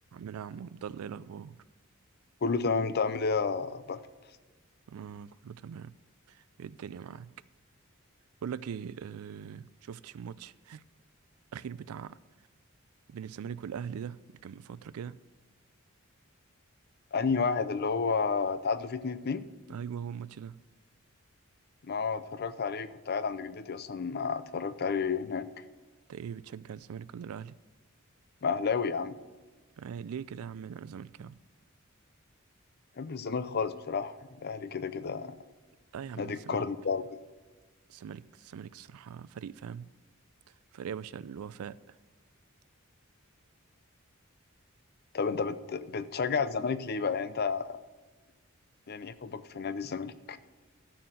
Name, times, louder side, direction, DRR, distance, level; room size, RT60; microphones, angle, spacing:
voice 1, 0.1-1.6 4.9-5.9 6.3-7.3 8.4-10.8 11.5-12.2 13.1-15.2 19.7-20.6 26.1-27.5 29.8-31.4 35.9-36.7 37.9-39.9 40.7-42.0, right 7 dB, 85° right, 0.4 m, -41 dB
voice 2, 2.4-4.0 17.1-19.5 21.8-25.5 28.4-29.2 33.0-35.3 36.2-37.2 45.1-47.8 48.9-50.4, left 5 dB, 45° left, 0.5 m, -31 dB
13.0 x 4.3 x 7.8 m
head